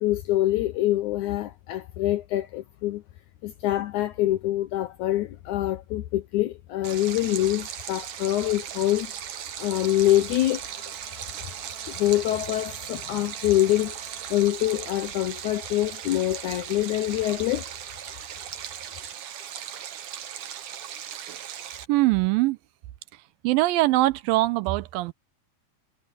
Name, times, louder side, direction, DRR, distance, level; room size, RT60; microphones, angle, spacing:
voice 1, 0.0-3.0 3.4-9.1 9.6-10.6 11.8-14.0 14.3-17.7, left 15 dB, 80° left, 1.8 m, -25 dB
Stream, 6.8-21.9, right 9 dB, 60° right, 2.8 m, -38 dB
Trumpet, 9.6-14.6, equal, 15° left, 5.9 m, -52 dB
voice 2, 21.9-22.6 23.4-25.1, right 18 dB, 85° right, 2.4 m, -22 dB
omnidirectional pair, 4.2 m